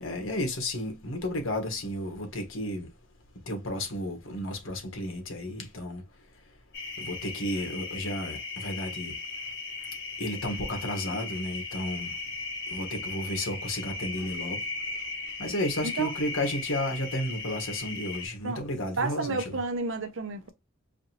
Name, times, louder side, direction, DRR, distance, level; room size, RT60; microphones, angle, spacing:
voice 1, 0.0-2.9 3.5-6.0 7.0-9.2 10.2-12.1 12.7-14.6 15.4-19.6, left 1 dB, 80° left, 1.4 m, -32 dB
sound 1, 6.7-18.3, left 3 dB, 55° left, 1.9 m, -37 dB
voice 2, 19.0-20.5, right 3 dB, 65° right, 0.8 m, -31 dB
5.0 x 2.6 x 2.9 m
head